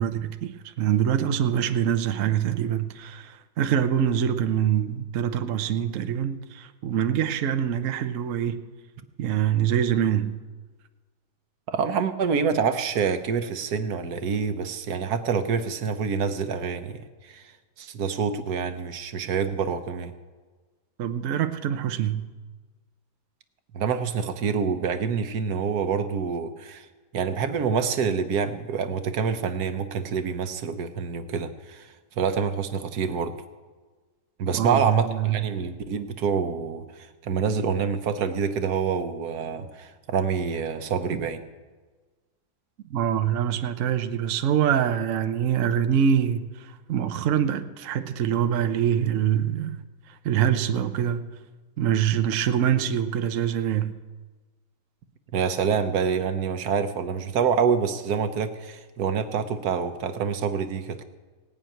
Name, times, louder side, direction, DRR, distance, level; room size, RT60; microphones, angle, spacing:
voice 1, 0.0-8.7 9.2-10.4 21.0-22.3 34.5-35.4 42.8-49.8 50.1-51.3 51.8-53.9, right 9 dB, 80° right, 9 dB, 0.7 m, -25 dB
voice 2, 11.7-17.4 17.8-20.1 23.7-26.9 27.1-33.3 34.4-41.4 52.1-52.2 55.3-61.0, right 6 dB, 60° right, 9 dB, 1.2 m, -27 dB
18.0 x 6.1 x 9.1 m, 1.3 s
omnidirectional pair, 2.2 m